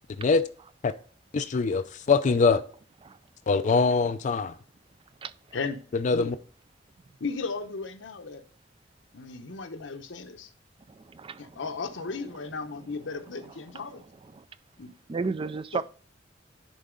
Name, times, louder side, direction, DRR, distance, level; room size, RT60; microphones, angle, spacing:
voice 1, 1.3-2.6 3.5-4.6 5.9-6.4, left 4 dB, 40° left, 0.4 m, -23 dB
voice 2, 5.2-5.6 10.9-11.6 13.7-13.8 14.3-14.5 15.1-15.8, right 4 dB, 30° right, 0.4 m, -34 dB
voice 3, 7.2-8.4 9.1-10.5 11.4-14.0 14.8-14.9 15.7-15.8, left 4 dB, 75° left, 0.9 m, -35 dB
10.5 x 4.0 x 3.8 m
head